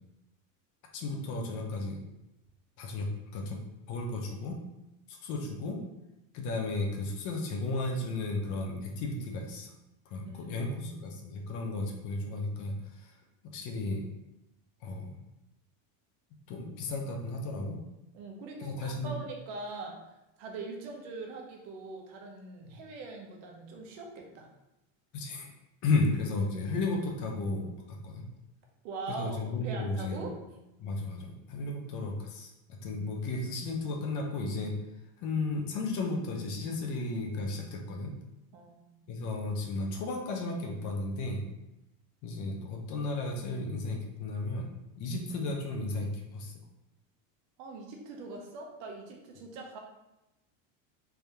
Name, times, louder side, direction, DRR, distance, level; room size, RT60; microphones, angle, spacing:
voice 1, 0.9-2.0 2.8-3.1 3.3-3.6 3.9-4.6 5.1-5.8 6.3-9.7 10.1-13.1 13.5-14.0 14.8-15.1 16.5-17.8 18.6-19.1 25.1-25.5 25.8-28.2 29.1-30.3 30.8-34.7 35.2-38.1 39.1-41.4 42.2-44.7 45.0-46.5, left 2 dB, 50° left, 1 dB, 0.8 m, -34 dB
voice 2, 10.2-11.0 18.1-20.0 20.4-24.5 28.8-30.4 38.5-39.2 47.6-49.8, right 3 dB, 65° right, 1 dB, 1.0 m, -42 dB
3.5 x 2.7 x 3.4 m, 0.94 s
supercardioid pair, 140°, 39 cm